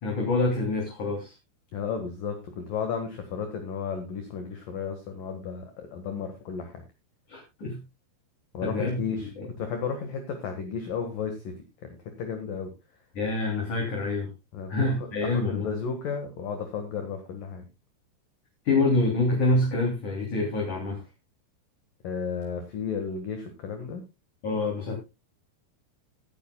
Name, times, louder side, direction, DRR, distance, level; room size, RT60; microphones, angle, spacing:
voice 1, 0.0-1.3 7.3-7.8 8.6-9.0 9.4-9.5 13.2-14.3 14.7-15.7 18.7-21.0 24.4-25.0, left 2 dB, 40° left, -1 dB, 4.1 m, -26 dB
voice 2, 1.7-6.8 8.5-9.3 9.6-11.5 11.8-12.7 14.5-14.7 15.2-17.6 22.0-24.0, left 6 dB, 60° left, 5 dB, 2.6 m, -33 dB
19.0 x 10.0 x 2.3 m, 0.25 s
omnidirectional pair, 6.0 m